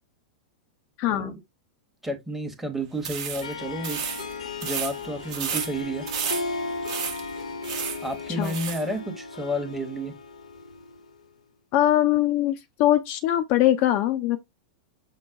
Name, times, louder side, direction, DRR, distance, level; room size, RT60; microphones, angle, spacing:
voice 1, 1.0-1.3 8.4-8.6 11.7-14.4, left 13 dB, 40° left, 0.5 m, -22 dB
voice 2, 2.0-4.0 4.6-6.1 8.0-10.1, right 1 dB, 5° right, 1.0 m, -31 dB
sound 1, 3.0-8.9, right 7 dB, 50° right, 0.9 m, -33 dB
Harp, 3.4-11.1, left 3 dB, 70° left, 0.8 m, -36 dB
6.4 x 2.2 x 3.6 m
figure-of-eight pair, 95°, 4 cm